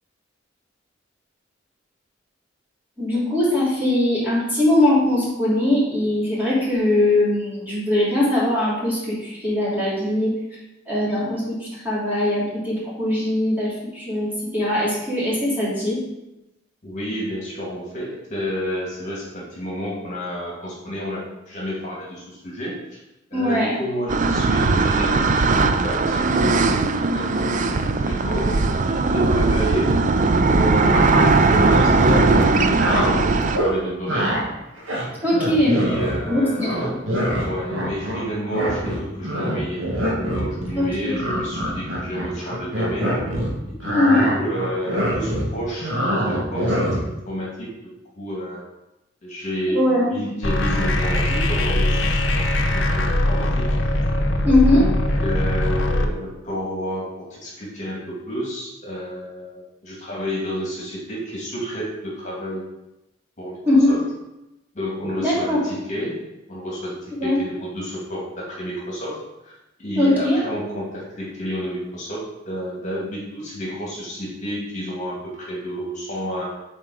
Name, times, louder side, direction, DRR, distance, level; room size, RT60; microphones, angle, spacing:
voice 1, 3.0-10.3 10.9-16.0 23.3-23.8 35.2-35.8 36.3-36.7 40.7-41.2 43.9-44.2 49.7-50.1 54.4-54.8 63.7-64.0 65.2-65.6 67.2-67.4 70.0-70.4, left 1 dB, 10° right, -9 dB, 2.9 m, -20 dB
voice 2, 16.8-23.0 23.3-32.7 33.0-34.3 35.7-36.9 37.4-39.8 40.1-43.1 43.7-46.8 47.0-47.7 48.2-48.6 49.2-52.5 52.7-53.6 54.7-54.9 55.2-62.6 63.4-64.0 64.7-66.2 66.5-69.2 69.4-76.5, equal, 40° left, -5 dB, 2.2 m, -30 dB
sound 1, 24.1-33.6, right 3 dB, 40° right, 0.4 m, -19 dB
sound 2, 30.9-33.1 33.5-33.7 34.1-34.4 34.8-36.3 36.6-38.2 38.5-43.5 43.8-47.1, equal, 85° right, 1.8 m, -24 dB
sound 3, 50.4-56.0, left 1 dB, 75° left, 0.8 m, -21 dB
7.3 x 4.4 x 4.9 m, 0.93 s
head